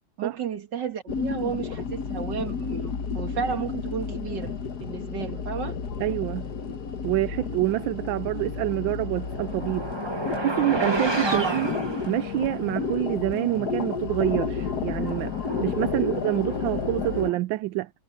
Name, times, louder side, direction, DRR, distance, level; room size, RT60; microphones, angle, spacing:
voice 1, 0.2-4.6 4.8-5.8 11.2-11.6 15.8-16.1, right 6 dB, 60° right, 2.5 m, -32 dB
sound 1, 1.1-17.3, left 5 dB, 50° left, 1.7 m, -31 dB
voice 2, 6.0-6.5 7.0-9.9 10.4-11.7 12.1-15.3 15.6-17.9, right 16 dB, 75° right, 1.3 m, -27 dB
sound 2, 8.8-12.7 13.5-13.6 14.1-17.4, right 2 dB, 15° right, 1.1 m, -32 dB
omnidirectional pair, 2.2 m